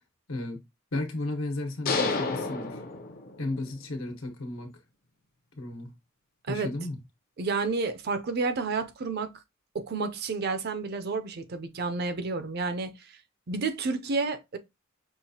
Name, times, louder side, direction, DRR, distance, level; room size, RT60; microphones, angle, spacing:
voice 1, 0.3-0.6 0.9-2.8 3.4-4.7 5.5-5.9 6.5-7.0, left 2 dB, 85° left, 1.2 m, -34 dB
sound 1, 1.9-3.7, left 3 dB, 45° left, 0.6 m, -30 dB
voice 2, 7.4-9.3 9.7-12.9 13.5-14.6, right 4 dB, 50° right, 0.5 m, -30 dB
5.6 x 2.4 x 2.8 m
head